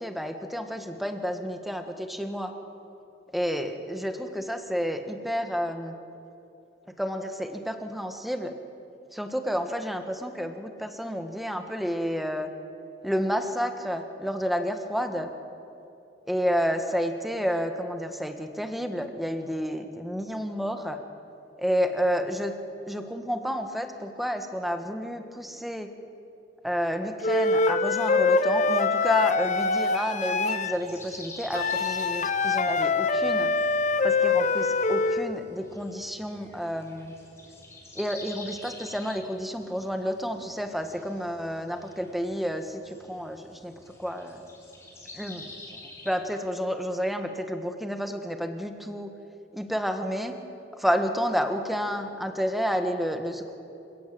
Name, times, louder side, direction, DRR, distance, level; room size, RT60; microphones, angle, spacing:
voice 1, 0.0-2.5 3.3-5.9 7.0-8.5 9.1-12.5 13.0-15.3 16.3-21.0 21.6-22.5 22.9-25.9 26.6-33.5 34.0-37.1 37.9-44.4 45.1-45.5 46.0-49.1 49.5-50.4 50.8-53.5, equal, ahead, 6 dB, 1.5 m, -30 dB
Wind instrument woodwind instrument, 27.2-30.7 31.5-35.3, left 3 dB, 45° left, 0.8 m, -24 dB
sound 1, 30.6-46.2, left 2 dB, 15° left, 4.1 m, -48 dB
27.5 x 17.5 x 7.8 m, 2.8 s
head